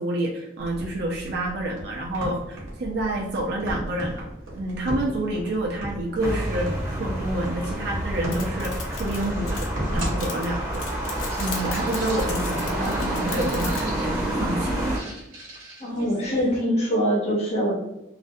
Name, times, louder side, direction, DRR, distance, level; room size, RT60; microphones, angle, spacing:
voice 1, 0.0-4.3 4.5-11.1 11.4-14.8, right 1 dB, 55° right, -1 dB, 0.4 m, -28 dB
sound 1, 0.6-16.6, right 1 dB, 80° right, 0.8 m, -36 dB
sound 2, 6.2-15.0, right 1 dB, 15° right, 0.6 m, -28 dB
sound 3, 8.3-13.9, left 4 dB, 85° left, 0.5 m, -36 dB
voice 2, 15.8-17.8, equal, 30° left, -5 dB, 0.8 m, -23 dB
2.4 x 2.1 x 2.6 m, 0.90 s
head